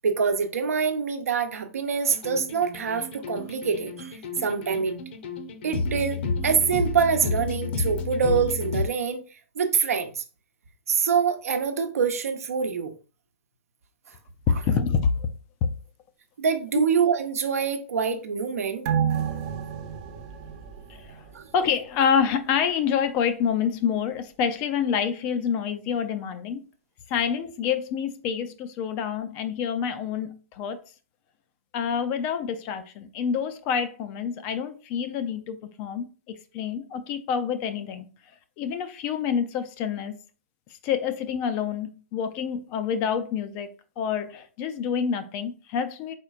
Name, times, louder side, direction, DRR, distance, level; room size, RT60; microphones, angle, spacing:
voice 1, 0.0-5.0 5.6-9.2 9.6-10.2 10.9-12.9 16.4-18.8 21.3-21.4, right 6 dB, 80° right, 0.8 m, -25 dB
sound 1, 2.1-8.9, left 3 dB, 45° left, 0.7 m, -31 dB
voice 2, 14.5-15.3 20.9-21.2 21.5-26.7 27.1-30.8 31.7-38.1 38.6-40.2 40.8-46.1, left 7 dB, 25° left, 0.3 m, -27 dB
sound 2, 18.9-21.8 22.1-22.2, right 8 dB, 30° right, 0.6 m, -30 dB
4.4 x 4.1 x 2.4 m
hypercardioid pair, 160°, 8 cm